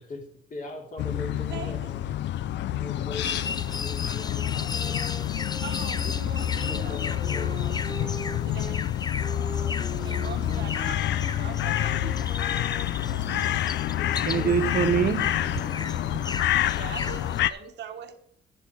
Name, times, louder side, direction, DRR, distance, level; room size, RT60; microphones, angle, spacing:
voice 1, 0.0-2.1 2.8-5.1 6.4-8.1 14.0-14.7, left 2 dB, 45° left, 3.6 m, -41 dB
sound 1, 1.0-17.5, left 12 dB, 75° left, 0.5 m, -28 dB
voice 2, 1.5-1.9 5.6-8.9 10.0-12.8 13.1-13.2 16.7-18.1, right 8 dB, 70° right, 1.5 m, -42 dB
sound 2, 3.1-17.4, left 4 dB, 20° left, 0.5 m, -37 dB
sound 3, 4.1-8.7 9.2-14.2, right 1 dB, 5° left, 2.0 m, -43 dB
voice 3, 13.3-13.6 14.3-16.3, right 7 dB, 50° right, 0.8 m, -27 dB
11.0 x 7.7 x 4.7 m
cardioid pair, 100°, 19 cm